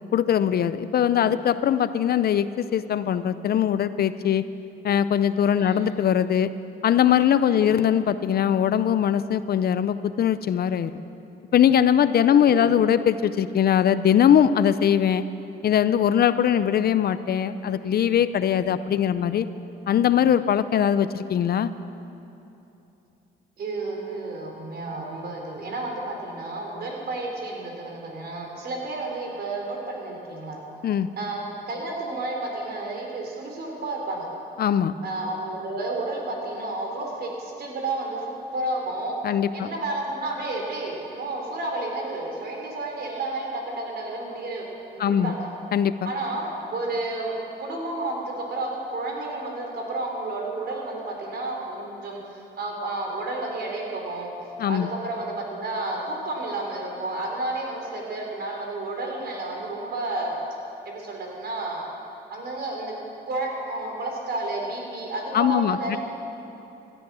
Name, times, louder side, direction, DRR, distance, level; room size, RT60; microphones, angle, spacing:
voice 1, 0.1-4.4 4.8-6.5 6.8-11.0 11.5-15.2 15.6-19.5 19.9-21.7 30.8-31.1 34.6-34.9 39.2-39.7 45.0-45.3 45.7-46.1 54.6-54.9 65.3-66.0, left 9 dB, 55° left, 13 dB, 0.6 m, -21 dB
voice 2, 12.3-12.7 23.6-30.6 31.2-31.4 31.7-34.3 35.0-39.2 39.5-44.7 44.9-45.5 46.0-46.4 46.7-54.3 54.7-60.4 60.8-61.9 62.3-62.9 63.3-66.0, right 2 dB, 60° right, 0 dB, 4.1 m, -31 dB
16.5 x 13.0 x 6.3 m, 3.0 s
cardioid pair, 85°, 19 cm